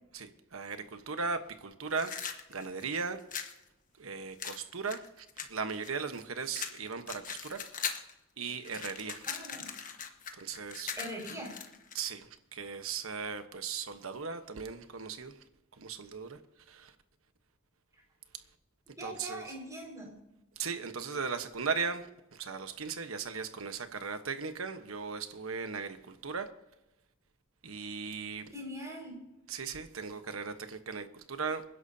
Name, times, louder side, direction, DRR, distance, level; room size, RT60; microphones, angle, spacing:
voice 1, 0.1-3.2 4.0-7.6 8.4-9.3 10.3-11.0 11.9-15.4 15.8-16.4 16.7-16.9 19.0-19.4 20.6-26.5 27.6-28.5 29.5-31.6, right 5 dB, 85° right, 8 dB, 1.2 m, -37 dB
sound 1, 1.9-3.6 4.4-6.2 6.5-8.1 8.4-12.0, left 7 dB, 40° left, 1.3 m, -40 dB
voice 2, 9.3-9.7 11.0-11.5 19.0-20.2 28.5-29.2, equal, 15° right, -1 dB, 5.3 m, -42 dB
27.0 x 11.0 x 2.8 m, 0.92 s
head